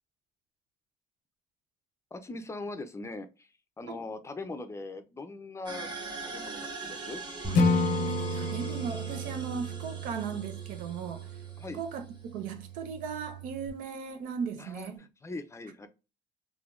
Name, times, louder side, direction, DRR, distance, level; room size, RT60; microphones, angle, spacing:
voice 1, 2.1-3.5 3.8-5.9 6.2-7.2 11.6-11.8 14.6-15.9, left 2 dB, 20° left, 0.5 m, -41 dB
sound 1, 5.7-12.3, right 3 dB, 30° right, 1.7 m, -43 dB
Bass guitar, 7.4-13.7, right 11 dB, 15° right, 0.9 m, -39 dB
Acoustic guitar / Strum, 7.5-10.7, left 4 dB, 80° left, 0.6 m, -30 dB
voice 2, 8.1-11.3 11.7-15.0, right 6 dB, 75° right, 0.7 m, -37 dB
3.4 x 2.6 x 2.4 m
cardioid pair, 105°, 14 cm